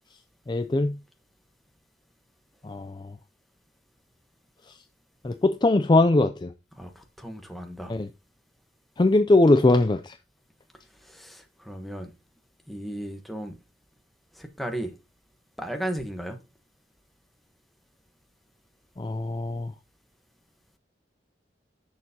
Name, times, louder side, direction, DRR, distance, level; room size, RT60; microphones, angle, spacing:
voice 1, 0.5-1.0 2.6-3.1 5.2-6.5 7.9-8.1 9.0-10.2 19.0-19.7, left 2 dB, 25° left, 0.4 m, -21 dB
voice 2, 6.8-7.9 11.0-12.1 12.7-13.5 14.4-14.9 15.6-16.4, right 1 dB, ahead, 1.1 m, -35 dB
10.5 x 6.7 x 2.8 m
head